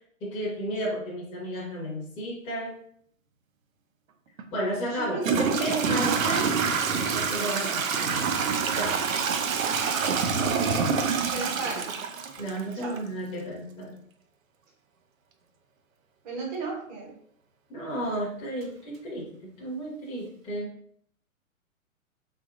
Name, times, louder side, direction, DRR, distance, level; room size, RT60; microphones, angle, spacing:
voice 1, 0.2-2.7 4.5-6.5 7.1-8.3 8.7-9.0 12.4-13.9 17.7-20.7, equal, 15° left, -6 dB, 0.8 m, -33 dB
Toilet flush / Trickle dribble, 4.4-4.5 5.2-13.0, right 5 dB, 70° right, 0.5 m, -26 dB
voice 2, 4.9-5.4 10.6-10.9 11.3-11.9 12.7-13.0 16.2-17.1, right 3 dB, 30° right, -1 dB, 0.9 m, -34 dB
3.4 x 2.7 x 2.4 m, 0.66 s
figure-of-eight pair, 120°, 42 cm